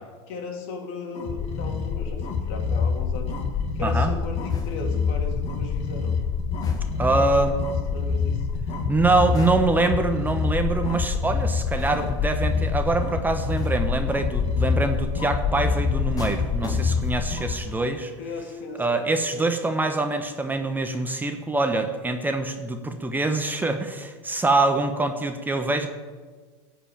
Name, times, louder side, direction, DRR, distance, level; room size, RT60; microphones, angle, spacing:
voice 1, 0.3-3.3 3.8-6.2 7.2-7.6 7.9-8.4 18.2-19.4, left 3 dB, 60° left, 2 dB, 2.7 m, -36 dB
sound 1, 1.1-17.5, left 5 dB, 40° left, 2.0 m, -26 dB
voice 2, 3.8-4.1 7.0-7.6 8.9-18.1 18.8-25.9, right 2 dB, 10° right, 6 dB, 1.1 m, -24 dB
sound 2, 4.5-5.1 6.6-7.2 9.3-10.0 11.8-12.3 13.6-14.0 16.2-17.3 17.7-18.0, left 4 dB, 25° left, 1.8 m, -36 dB
15.0 x 5.1 x 8.6 m, 1.4 s
hypercardioid pair, 105°, 15 cm